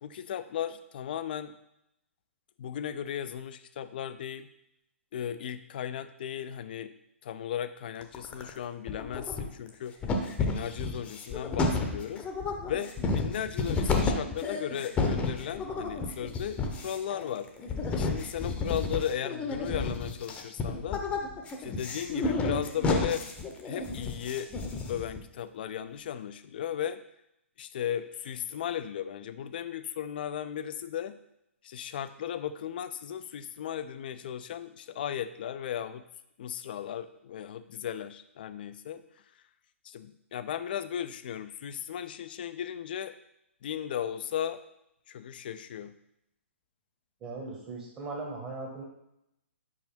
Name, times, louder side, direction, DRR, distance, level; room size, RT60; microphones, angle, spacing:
voice 1, 0.0-1.5 2.6-4.5 5.1-6.9 7.2-10.0 10.2-12.3 12.7-17.5 17.9-21.0 21.6-23.2 23.7-24.5 24.9-27.0 27.6-31.2 31.6-36.0 36.4-39.0 39.8-43.2 43.6-44.6 45.1-46.0, left 9 dB, 45° left, 12 dB, 0.4 m, -36 dB
sound 1, 8.0-8.6 8.9-9.7 10.0-25.2, left 3 dB, 15° left, 0.8 m, -31 dB
voice 2, 47.2-48.8, right 3 dB, 20° right, -3 dB, 1.0 m, -38 dB
4.9 x 4.8 x 4.3 m, 0.82 s
figure-of-eight pair, 120°, 7 cm